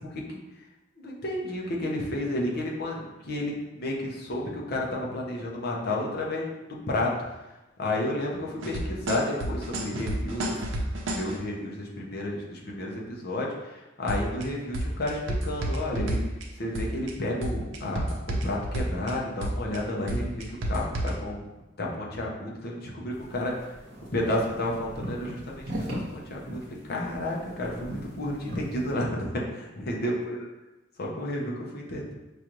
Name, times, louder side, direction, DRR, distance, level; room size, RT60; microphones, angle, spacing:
voice 1, 1.0-7.1 7.8-10.9 11.1-16.2 16.6-21.4 21.8-23.5 24.1-30.4 31.0-32.1, left 1 dB, 55° left, -2 dB, 0.7 m, -31 dB
sound 1, 8.6-11.3 14.1-14.4 14.7-16.4 16.8-17.1 17.4-19.1 19.4-19.8 20.1-21.1, right 1 dB, 85° right, 0.6 m, -30 dB
sound 2, 23.1-28.9, equal, 60° right, 1.0 m, -39 dB
4.9 x 2.5 x 3.0 m, 1.0 s
head